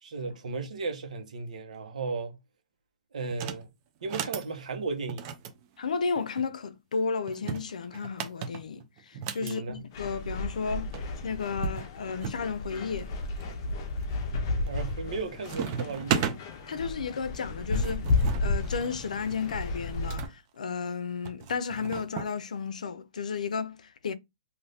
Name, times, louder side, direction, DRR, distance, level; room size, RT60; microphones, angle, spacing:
voice 1, 0.0-2.4 3.1-3.7 4.0-5.3 9.4-9.8 14.6-16.2, right 4 dB, 75° right, 1.2 m, -35 dB
sound 1, 3.3-3.6 4.0-4.5 5.1-6.5 7.3-9.6 10.6-10.7 10.9-11.0 11.6-12.4 13.0-13.5 14.0-14.4 14.7-15.2 15.4-16.4 17.4-20.3 21.3-22.3, right 8 dB, 25° right, 0.5 m, -36 dB
voice 2, 5.8-13.1 16.7-24.1, left 5 dB, 90° left, 0.6 m, -33 dB
sound 2, 9.9-20.3, left 3 dB, 30° left, 0.6 m, -32 dB
2.7 x 2.7 x 3.4 m
hypercardioid pair, 170°, 4 cm